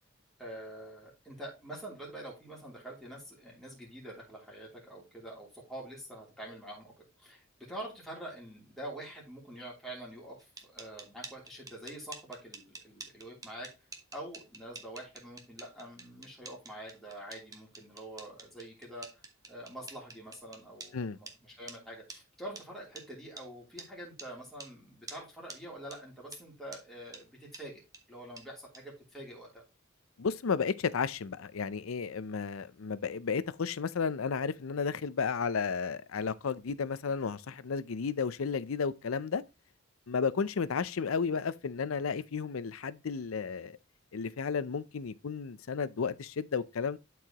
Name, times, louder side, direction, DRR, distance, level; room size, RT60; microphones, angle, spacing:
voice 1, 0.4-6.9 7.2-13.7 14.1-19.1 19.5-27.8 28.1-29.6, right 1 dB, ahead, 3.1 m, -46 dB
sound 1, 10.4-20.9 21.3-21.4 21.7-21.8 22.1-22.2 22.6-22.7 23.0-23.1 23.4-23.5 23.8-23.9 24.2-24.3 24.6-24.7 25.1-25.2 25.5-25.6 25.9-26.0 26.3-26.4 26.7-26.8 27.1-27.2 27.5-27.6 27.9-28.0 28.4-28.5 28.7-28.8, right 3 dB, 20° right, 1.2 m, -47 dB
voice 2, 30.2-39.4 40.1-43.8 44.1-47.0, left 5 dB, 80° left, 0.5 m, -33 dB
11.5 x 4.7 x 2.9 m
head